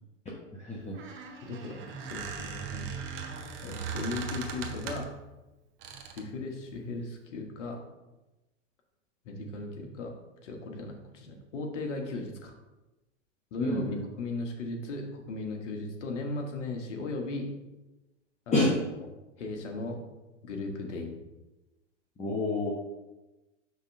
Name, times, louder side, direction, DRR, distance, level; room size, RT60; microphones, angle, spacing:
voice 1, 0.6-1.0 13.6-14.0 18.5-18.7 22.2-22.7, left 2 dB, 20° left, -4 dB, 1.1 m, -28 dB
Squeak, 0.8-5.2 5.8-6.3, right 5 dB, 30° right, 0.9 m, -39 dB
voice 2, 1.4-2.9 3.6-5.1 6.1-7.8 9.2-10.1 10.4-12.5 13.5-13.8 14.2-17.5 18.5-18.7 19.4-20.0 20.4-21.1, left 2 dB, 70° left, 2 dB, 1.4 m, -37 dB
5.5 x 3.7 x 5.2 m, 1.1 s
hypercardioid pair, 105°, 37 cm